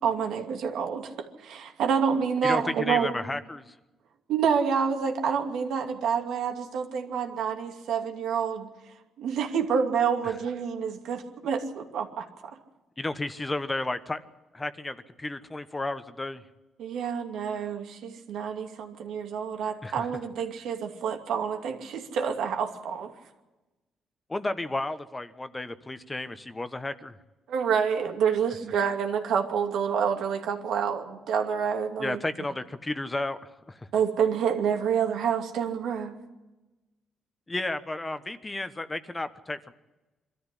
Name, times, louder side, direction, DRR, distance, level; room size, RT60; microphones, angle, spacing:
voice 1, 0.0-3.1 4.3-8.7 9.2-12.3 16.8-23.1 27.5-32.2 33.9-36.1, right 7 dB, 80° right, 4 dB, 2.5 m, -28 dB
voice 2, 2.4-3.7 10.2-10.3 13.0-14.2 14.5-16.4 19.8-20.1 24.3-27.2 32.0-33.9 37.5-39.7, left 2 dB, 20° left, 11 dB, 1.1 m, -33 dB
23.0 x 13.5 x 10.0 m, 1.1 s
cardioid pair, 90°, 0 cm